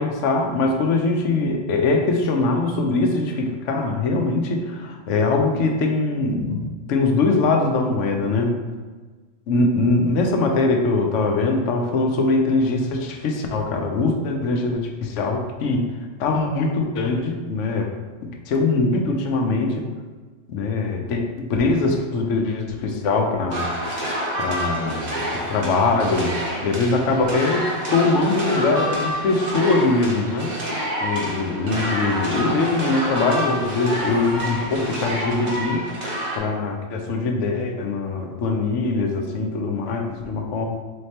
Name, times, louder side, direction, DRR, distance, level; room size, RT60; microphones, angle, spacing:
voice 1, 0.0-8.5 9.5-15.8 16.2-17.9 18.2-19.9 20.5-23.7 24.4-26.3 26.6-30.5 31.0-35.8 36.4-40.7, left 3 dB, 75° left, 3 dB, 0.9 m, -22 dB
sound 1, 23.5-36.4, equal, 40° right, 0.7 m, -28 dB
4.2 x 3.2 x 2.8 m, 1.4 s
omnidirectional pair, 1.3 m